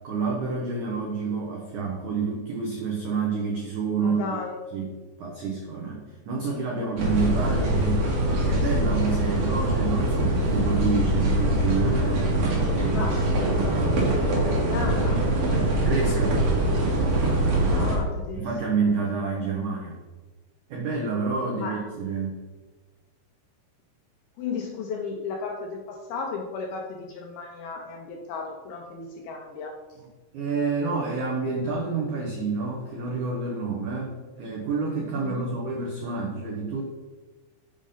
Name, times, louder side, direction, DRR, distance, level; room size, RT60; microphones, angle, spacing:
voice 1, 0.0-4.2 4.7-4.9 5.2-8.1 8.4-13.0 13.5-13.7 14.1-14.2 15.8-16.4 18.3-19.9 20.7-22.3 30.3-36.8, right 4 dB, 80° right, -1 dB, 1.7 m, -28 dB
voice 2, 4.0-4.6 12.9-15.3 17.6-18.5 21.4-21.9 24.4-29.8 35.1-35.5, left 5 dB, 80° left, 1 dB, 2.2 m, -35 dB
sound 1, 7.0-18.0, right 1 dB, 60° right, 3.3 m, -23 dB
7.2 x 5.2 x 5.5 m, 1.3 s
omnidirectional pair, 5.1 m